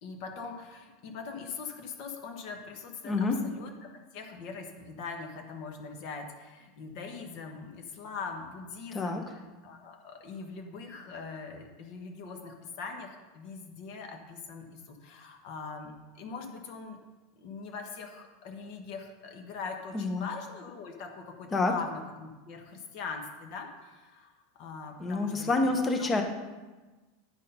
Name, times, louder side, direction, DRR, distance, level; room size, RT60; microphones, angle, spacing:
voice 1, 0.0-17.0 17.4-26.2, left 5 dB, 45° left, 4 dB, 1.2 m, -42 dB
voice 2, 3.0-3.4 8.9-9.2 19.9-20.2 21.5-21.7 25.0-26.2, left 3 dB, 15° left, 5 dB, 0.9 m, -27 dB
10.0 x 6.5 x 5.5 m, 1.2 s
supercardioid pair, 175°, 0 cm